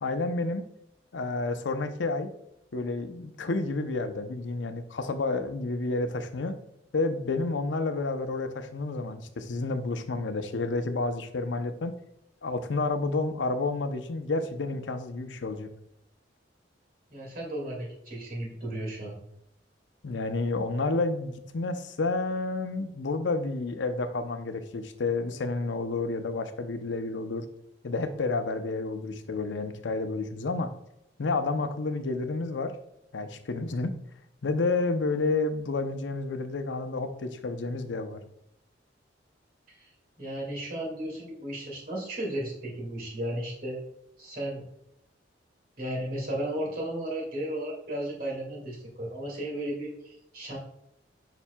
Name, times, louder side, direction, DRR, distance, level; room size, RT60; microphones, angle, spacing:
voice 1, 0.0-0.6 1.1-2.3 2.7-6.5 6.9-12.0 12.4-15.7 20.0-27.4 27.8-30.7 31.2-32.7 33.1-34.0 34.4-38.2, left 3 dB, 80° left, 8 dB, 0.6 m, -30 dB
voice 2, 17.1-19.1 39.7-39.9 40.2-43.8 44.2-44.6 45.8-50.6, right 1 dB, 50° right, -2 dB, 2.2 m, -34 dB
7.1 x 5.9 x 2.3 m, 0.78 s
head